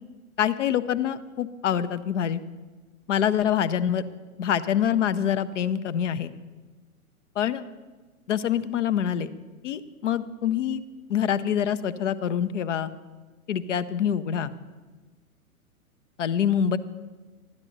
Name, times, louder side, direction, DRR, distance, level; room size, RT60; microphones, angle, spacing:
voice 1, 0.4-2.4 3.1-4.0 4.4-6.3 7.4-7.6 8.3-9.3 9.6-10.8 11.1-12.9 13.5-14.5 16.2-16.8, left 9 dB, 55° left, 15 dB, 0.7 m, -25 dB
12.0 x 10.5 x 3.9 m, 1.3 s
figure-of-eight pair, 110°, 44 cm